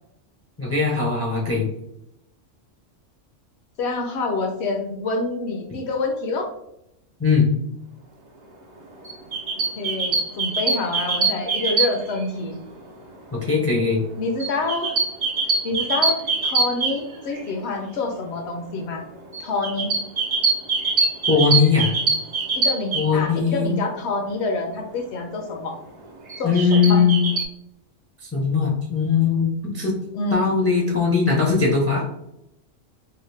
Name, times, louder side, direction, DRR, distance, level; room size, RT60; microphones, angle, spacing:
voice 1, 0.6-1.7 7.2-7.5 13.3-14.0 21.3-21.9 22.9-23.8 26.4-27.2 28.2-30.0 30.3-32.1, left 5 dB, 25° left, -2 dB, 0.3 m, -20 dB
voice 2, 3.8-6.5 9.8-12.6 14.2-15.0 15.6-19.0 19.4-19.9 22.5-25.7 26.4-27.0 30.1-30.6, left 3 dB, 65° left, 3 dB, 0.9 m, -27 dB
sound 1, 9.0-12.3 14.4-17.5 19.3-23.1 26.3-27.4, right 4 dB, 60° right, 0.4 m, -23 dB
2.8 x 2.5 x 3.1 m, 0.81 s
omnidirectional pair, 1.3 m